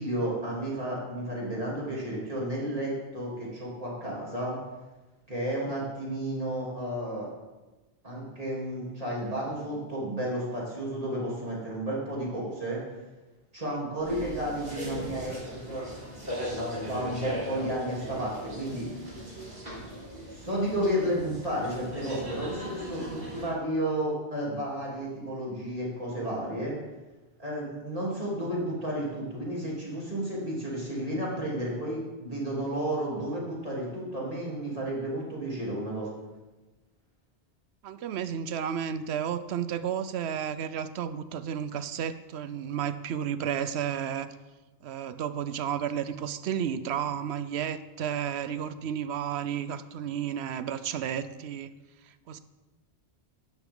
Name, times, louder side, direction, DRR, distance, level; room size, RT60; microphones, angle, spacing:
voice 1, 0.0-4.6 5.3-7.3 8.0-12.8 13.5-15.9 16.8-18.9 20.3-26.7 27.4-36.1, right 1 dB, 35° right, -6 dB, 3.4 m, -32 dB
sound 1, 14.0-23.5, equal, 60° right, 4.4 m, -38 dB
voice 2, 37.8-44.3 44.8-51.7 52.3-52.4, right 8 dB, 75° right, 13 dB, 0.9 m, -32 dB
12.0 x 10.5 x 3.8 m, 1.2 s
omnidirectional pair, 1.1 m